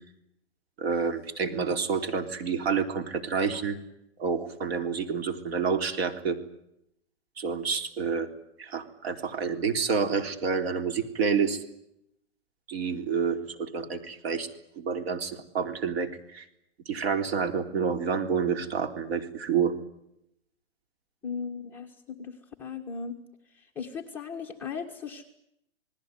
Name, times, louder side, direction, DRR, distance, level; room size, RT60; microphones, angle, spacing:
voice 1, 0.8-3.8 4.2-6.4 7.4-8.3 8.6-11.6 12.7-14.5 14.8-16.4 16.9-19.7, right 5 dB, 55° right, 8 dB, 3.8 m, -28 dB
voice 2, 21.2-22.3 22.6-23.2 23.7-25.3, left 5 dB, 5° left, -2 dB, 1.5 m, -37 dB
29.0 x 19.5 x 9.6 m, 0.81 s
hypercardioid pair, 170°, 36 cm